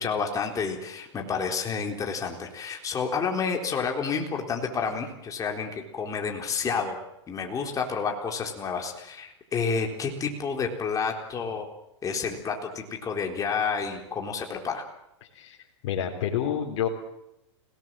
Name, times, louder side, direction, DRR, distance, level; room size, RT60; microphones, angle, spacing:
voice 1, 0.0-7.0 7.3-11.7 12.0-14.8, left 5 dB, 20° left, 2 dB, 3.9 m, -30 dB
voice 2, 15.8-16.9, left 9 dB, 60° left, 1 dB, 3.9 m, -28 dB
29.5 x 18.5 x 7.7 m, 0.87 s
hypercardioid pair, 120°, 15 cm